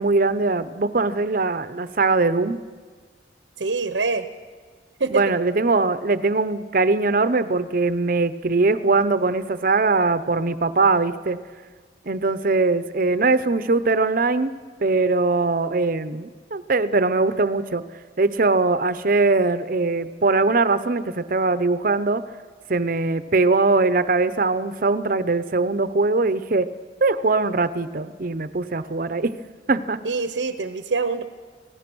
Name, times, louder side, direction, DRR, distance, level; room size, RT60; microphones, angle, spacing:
voice 1, 0.0-2.6 5.1-11.4 12.1-14.5 14.8-17.8 18.2-22.2 22.7-26.7 27.0-29.4 29.7-30.0, right 3 dB, 50° right, 13 dB, 0.8 m, -21 dB
voice 2, 3.6-4.3 5.0-5.2 30.0-31.2, right 4 dB, 85° right, 9 dB, 1.0 m, -24 dB
25.5 x 18.0 x 6.2 m, 1.5 s
head